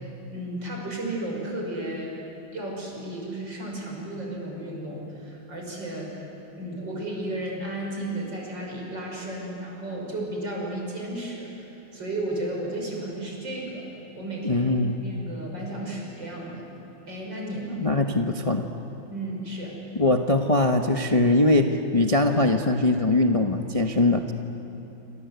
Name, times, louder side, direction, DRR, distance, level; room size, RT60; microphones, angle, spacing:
voice 1, 0.0-2.3 2.5-6.2 6.6-11.6 11.9-13.9 14.1-14.6 14.9-16.6 17.1-17.8 19.1-19.8, right 1 dB, 65° right, -1 dB, 6.6 m, -33 dB
voice 2, 14.4-15.0 17.8-18.7 19.9-24.3, left 2 dB, 25° left, 4 dB, 0.8 m, -21 dB
28.5 x 25.5 x 8.2 m, 2.9 s
omnidirectional pair, 2.1 m